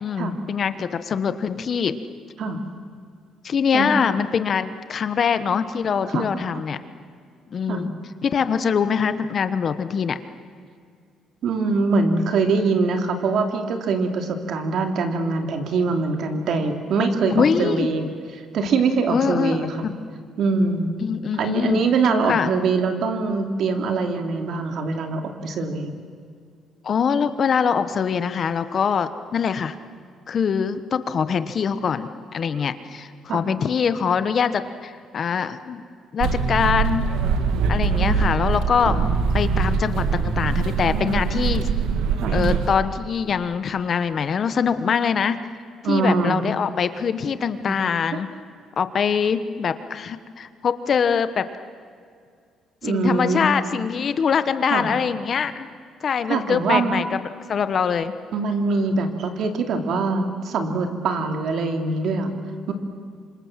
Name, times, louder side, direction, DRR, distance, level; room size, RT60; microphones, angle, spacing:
voice 1, 0.0-2.0 3.4-6.8 7.5-7.9 8.2-10.2 17.3-17.9 19.1-19.9 21.0-21.8 22.2-22.5 26.8-29.8 30.3-35.8 36.1-37.1 37.7-38.9 39.3-41.7 42.3-45.4 45.9-48.3 48.8-51.5 52.8-55.7 56.0-58.1, left 6 dB, 35° left, 12 dB, 1.0 m, -23 dB
voice 2, 3.7-4.1 6.1-6.3 7.7-7.9 11.4-18.1 18.5-19.8 20.4-20.9 21.4-26.0 33.3-33.4 38.8-39.0 42.2-42.4 45.8-46.4 47.7-47.8 52.8-53.4 54.7-54.9 56.3-57.0 58.3-62.4 62.7-62.8, right 4 dB, 55° right, 6 dB, 2.7 m, -23 dB
sound 1, 36.2-42.7, right 5 dB, 80° right, 1.9 m, -22 dB
27.5 x 25.5 x 7.4 m, 2.2 s
cardioid pair, 160°, 0 cm